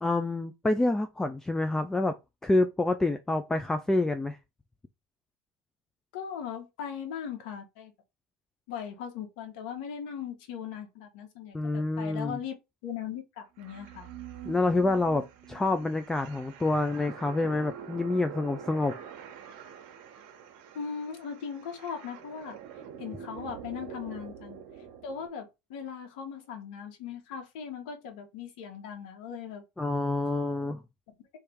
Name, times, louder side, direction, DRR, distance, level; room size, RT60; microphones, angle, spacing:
voice 1, 0.0-2.2 2.4-4.4 11.5-12.4 14.4-19.0 29.8-30.8, left 2 dB, 10° left, 0.5 m, -27 dB
voice 2, 6.1-7.9 8.7-14.1 20.7-22.6 23.0-24.6 25.0-29.6, left 7 dB, 70° left, 1.6 m, -39 dB
sound 1, 13.6-25.3, right 8 dB, 65° right, 1.1 m, -45 dB
3.4 x 3.2 x 4.6 m
supercardioid pair, 105°, 5 cm